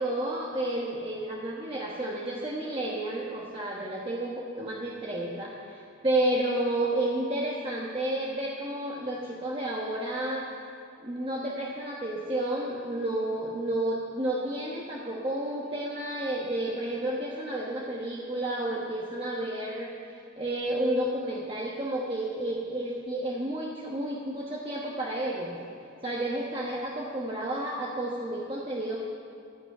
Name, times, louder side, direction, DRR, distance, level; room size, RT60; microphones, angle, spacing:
voice 1, 0.0-10.5 11.0-25.6 26.0-29.0, right 1 dB, 25° right, -4 dB, 1.2 m, -31 dB
15.0 x 6.1 x 9.9 m, 2.7 s
head